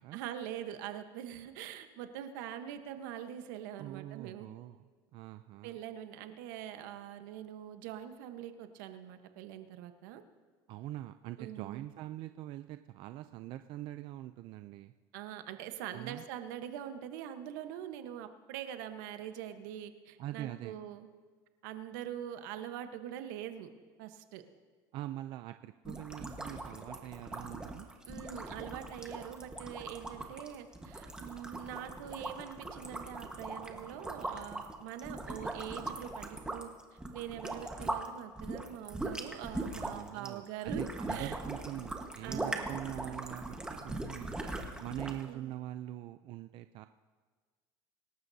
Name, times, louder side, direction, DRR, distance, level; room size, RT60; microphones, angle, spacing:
voice 1, 0.1-4.5 5.6-10.2 11.4-11.9 15.1-21.1 21.6-23.7 24.0-24.4 28.1-36.7 37.1-40.8 41.1-41.4 42.2-42.7 45.2-45.5, right 10 dB, 80° right, 8 dB, 1.1 m, -43 dB
voice 2, 3.8-5.8 10.7-14.9 15.9-16.2 20.2-20.8 24.9-27.9 39.7-44.4 44.8-46.9, right 14 dB, 55° right, 10 dB, 0.5 m, -43 dB
sound 1, 25.8-38.1 38.4-45.3, right 2 dB, 10° right, 1.4 m, -40 dB
25.5 x 12.5 x 2.8 m, 1.5 s
supercardioid pair, 120°, 10 cm